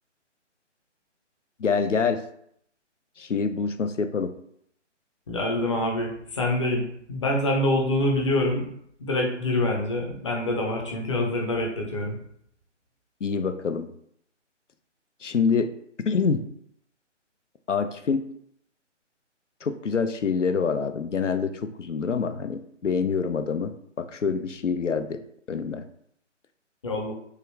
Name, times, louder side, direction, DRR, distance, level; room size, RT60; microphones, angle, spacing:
voice 1, 1.6-2.2 3.2-4.3 13.2-13.9 15.2-15.7 16.1-16.4 17.7-18.3 19.6-25.2 25.5-25.8, left 5 dB, 80° left, 9 dB, 0.6 m, -26 dB
voice 2, 5.3-8.7 9.0-12.2 26.8-27.1, left 1 dB, 25° left, 1 dB, 0.7 m, -26 dB
6.6 x 2.5 x 3.2 m, 0.69 s
figure-of-eight pair, 140°, 36 cm